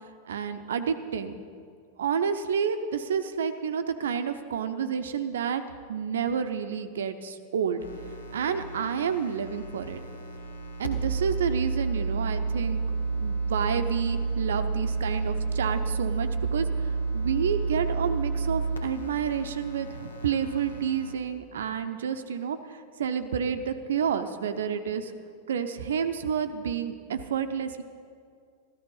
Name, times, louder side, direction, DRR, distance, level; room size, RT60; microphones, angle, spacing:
voice 1, 0.3-1.4 2.0-5.6 5.9-7.8 8.3-10.0 10.8-12.8 13.1-25.1 25.5-27.8, right 7 dB, 65° right, 10 dB, 0.7 m, -29 dB
sound 1, 7.8-21.1, right 4 dB, 75° left, 1.7 m, -31 dB
14.0 x 13.5 x 5.6 m, 2.2 s
figure-of-eight pair, 90°, 0 cm